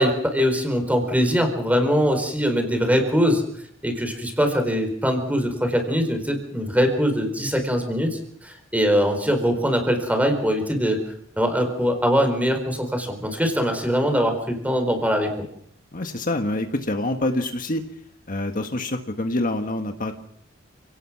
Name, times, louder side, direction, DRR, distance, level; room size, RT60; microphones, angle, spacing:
voice 1, 0.0-3.4 3.8-11.0 11.4-15.5, equal, 10° right, 6 dB, 4.4 m, -22 dB
voice 2, 15.9-17.8 18.3-20.1, left 1 dB, 45° left, 6 dB, 1.6 m, -26 dB
29.5 x 18.0 x 6.1 m, 0.67 s
head